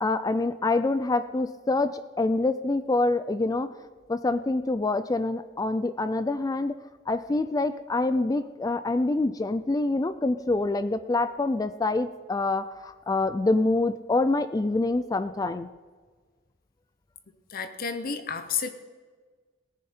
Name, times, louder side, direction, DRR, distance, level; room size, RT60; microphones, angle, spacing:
voice 1, 0.0-3.7 4.1-6.7 7.1-15.7, left 2 dB, 20° left, 12 dB, 0.3 m, -26 dB
voice 2, 17.5-18.7, left 6 dB, 45° left, 9 dB, 0.7 m, -31 dB
17.5 x 10.0 x 4.4 m, 1.4 s
head